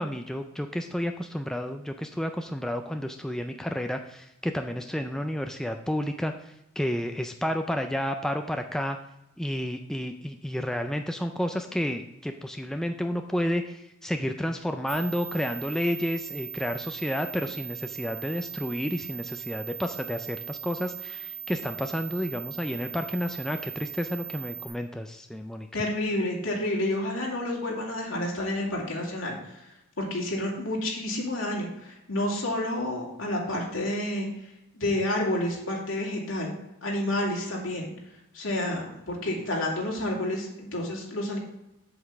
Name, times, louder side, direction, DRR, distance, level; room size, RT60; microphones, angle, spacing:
voice 1, 0.0-9.0 9.4-25.7, equal, 5° left, 5 dB, 0.3 m, -31 dB
sound 1, 14.9-24.7, right 6 dB, 70° right, 1.0 m, -39 dB
voice 2, 25.7-29.3 30.0-34.3 34.7-36.5 36.8-37.9 38.3-41.4, left 1 dB, 70° left, -2 dB, 2.5 m, -29 dB
7.9 x 7.6 x 3.5 m, 0.87 s
head